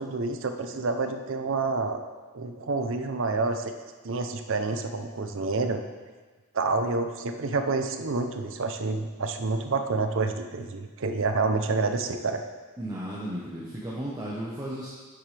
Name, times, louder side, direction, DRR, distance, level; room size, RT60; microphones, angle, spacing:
voice 1, 0.0-2.0 2.3-3.7 4.0-5.8 6.5-12.4, right 3 dB, 60° right, 6 dB, 0.7 m, -28 dB
voice 2, 12.8-14.9, right 1 dB, 15° right, -6 dB, 1.0 m, -34 dB
9.7 x 7.9 x 3.4 m, 1.4 s
head